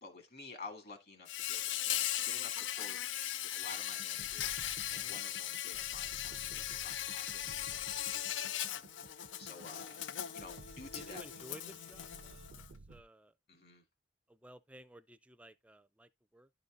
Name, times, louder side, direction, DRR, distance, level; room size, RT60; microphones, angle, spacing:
voice 1, 0.0-3.1 3.4-4.6 4.9-10.0 10.3-11.2 13.5-13.8, left 3 dB, 55° left, 1.7 m, -52 dB
Insect, 1.3-12.7, left 12 dB, 80° left, 0.4 m, -39 dB
sound 1, 4.0-13.0, right 2 dB, 60° right, 0.5 m, -55 dB
sound 2, 6.4-12.5, left 1 dB, 85° right, 1.1 m, -62 dB
voice 2, 7.7-8.3 9.6-9.8 10.9-13.4 14.3-16.5, right 1 dB, 5° right, 0.4 m, -56 dB
11.5 x 4.0 x 3.7 m
head